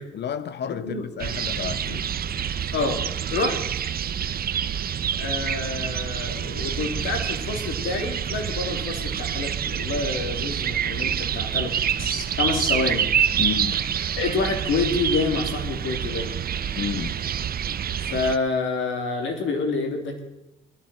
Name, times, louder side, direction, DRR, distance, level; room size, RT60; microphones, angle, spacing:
voice 1, 0.1-2.1 13.4-13.8 16.8-17.2, left 7 dB, 60° left, 1.1 m, -31 dB
sound 1, 1.2-18.4, right 8 dB, 50° right, 0.8 m, -27 dB
voice 2, 2.7-3.6 5.2-11.7 12.0-13.1 14.2-16.3 18.0-20.2, left 3 dB, 80° left, 3.3 m, -27 dB
17.5 x 13.5 x 4.5 m
cardioid pair, 90°, 20 cm